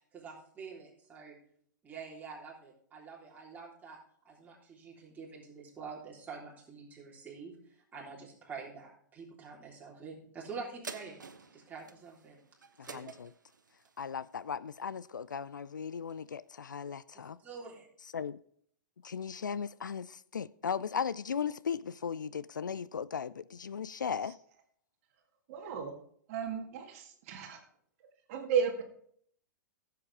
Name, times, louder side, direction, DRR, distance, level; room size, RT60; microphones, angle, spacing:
voice 1, 0.1-1.4 1.8-4.0 4.3-7.6 7.9-11.2 11.5-12.4 12.8-13.1 17.1-17.9, right 5 dB, 15° right, 3.5 m, -46 dB
sound 1, 10.8-15.6 16.1-16.2, right 5 dB, 75° right, 0.9 m, -50 dB
voice 2, 12.8-13.3 14.0-17.4 18.1-18.4 19.0-24.4, left 7 dB, 75° left, 0.4 m, -37 dB
voice 3, 25.5-25.9 26.3-27.6 28.3-28.8, right 7 dB, 45° right, 1.8 m, -34 dB
15.0 x 7.6 x 3.5 m
figure-of-eight pair, 105°, 10 cm